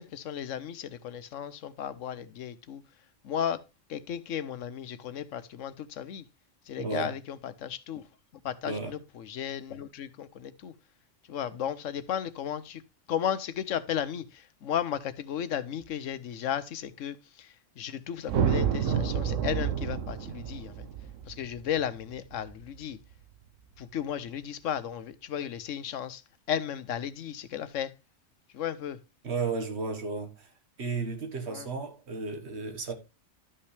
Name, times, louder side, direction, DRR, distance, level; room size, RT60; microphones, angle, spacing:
voice 1, 0.0-2.8 3.2-3.6 3.9-6.3 6.7-8.1 8.4-10.7 11.3-12.8 13.1-20.9 21.3-23.0 23.8-26.2 26.5-27.9 28.5-29.0 31.5-31.7, left 9 dB, 85° left, 1.1 m, -34 dB
voice 2, 6.8-7.1 8.6-9.0 29.2-30.5 30.8-32.9, right 4 dB, 60° right, 1.8 m, -33 dB
sound 1, 18.3-22.7, right 8 dB, 85° right, 1.2 m, -29 dB
12.0 x 5.6 x 3.3 m
omnidirectional pair, 1.3 m